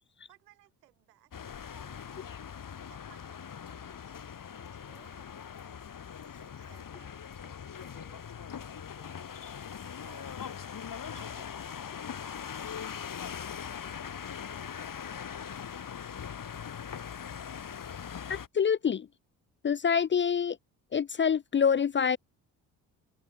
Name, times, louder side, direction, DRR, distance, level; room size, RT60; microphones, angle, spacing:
voice 1, 0.3-2.3 2.9-4.2 4.5-5.8 6.2-9.3 9.8-10.6 11.0-11.8 13.4-15.6, right 15 dB, 85° right, 6.0 m, -62 dB
sound 1, 1.3-18.5, left 7 dB, 45° left, 2.9 m, -41 dB
voice 2, 18.3-19.1 19.6-20.6 20.9-22.2, left 7 dB, 25° left, 0.5 m, -26 dB
hypercardioid pair, 45°, 46 cm